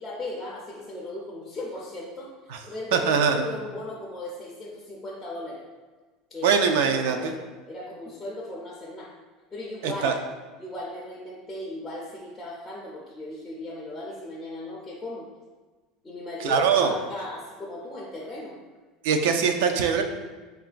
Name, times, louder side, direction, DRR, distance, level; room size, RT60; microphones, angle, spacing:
voice 1, 0.0-5.6 6.3-6.6 7.0-9.1 9.5-10.1 10.6-15.3 16.0-18.5, left 1 dB, 10° left, -5 dB, 0.3 m, -37 dB
voice 2, 2.9-3.5 6.4-7.3 9.8-10.1 16.4-16.9 19.0-20.0, right 6 dB, 75° right, 6 dB, 0.3 m, -22 dB
3.8 x 2.3 x 2.4 m, 1.3 s
cardioid pair, 180°, 0 cm